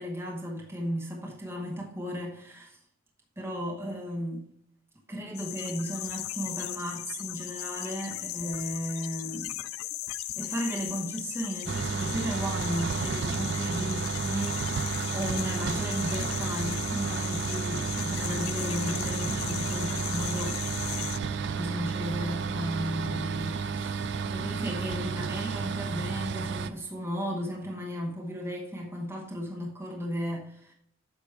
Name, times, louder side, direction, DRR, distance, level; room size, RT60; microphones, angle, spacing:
voice 1, 0.0-2.8 3.4-4.5 5.1-9.5 10.2-20.6 21.6-30.7, equal, 10° right, 1.0 m, -35 dB
sound 1, 5.3-21.2, left 15 dB, 85° left, 0.3 m, -37 dB
sound 2, 11.7-26.7, right 5 dB, 55° right, 0.4 m, -32 dB
8.2 x 5.0 x 3.4 m
head